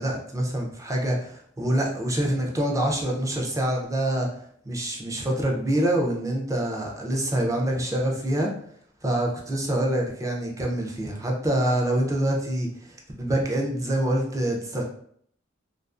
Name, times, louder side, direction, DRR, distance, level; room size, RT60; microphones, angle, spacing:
voice 1, 0.0-4.3 4.7-8.5 9.0-14.8, right 1 dB, 15° right, 0 dB, 0.4 m, -26 dB
2.4 x 2.3 x 2.4 m, 0.63 s
head